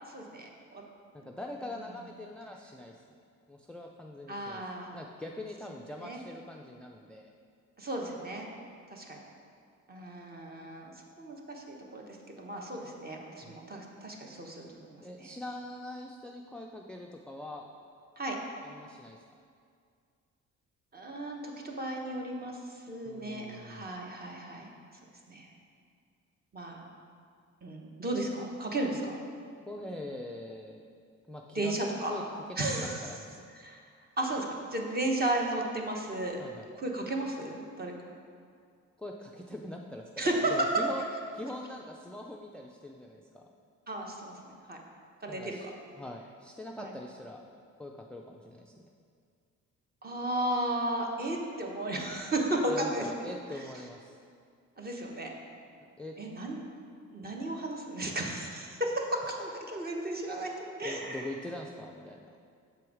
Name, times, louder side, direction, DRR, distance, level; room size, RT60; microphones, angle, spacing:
voice 1, 0.1-0.8 4.3-4.9 6.0-6.2 7.8-8.5 8.9-9.2 9.9-12.0 12.4-15.3 18.2-18.4 20.9-22.6 22.9-24.6 25.3-25.5 26.5-26.9 27.6-29.1 31.5-32.2 32.6-33.0 33.6-33.8 34.2-34.4 34.7-36.4 36.8-37.9 40.2-40.5 43.9-44.3 44.7-44.8 45.2-45.6 46.8-46.9 50.0-53.3 54.8-55.3 56.2-56.6 57.1-61.3, right 1 dB, 30° right, 0 dB, 1.0 m, -34 dB
voice 2, 1.1-3.2 3.5-4.6 4.9-7.3 13.4-13.6 15.0-17.6 18.6-19.2 23.1-23.9 29.7-30.9 31.3-31.8 32.1-32.2 32.6-33.4 36.4-36.7 39.0-41.0 41.3-43.4 45.3-45.7 46.0-47.4 47.8-48.7 52.7-54.2 56.0-56.1 58.0-58.2 60.8-62.4, left 1 dB, 5° left, 1 dB, 0.3 m, -43 dB
7.0 x 4.7 x 4.8 m, 2.2 s
cardioid pair, 95°, 30 cm